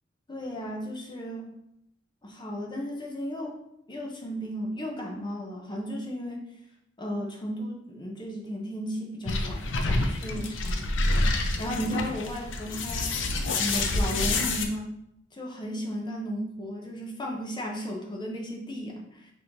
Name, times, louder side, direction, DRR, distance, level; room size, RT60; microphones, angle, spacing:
voice 1, 0.3-1.5 2.2-3.6 3.9-6.4 7.0-10.9 11.6-13.2 13.6-14.9 15.3-19.3, equal, 25° left, 0 dB, 0.7 m, -34 dB
sound 1, 9.3-14.6, left 2 dB, 70° left, 0.5 m, -27 dB
5.4 x 3.0 x 2.6 m, 0.79 s
head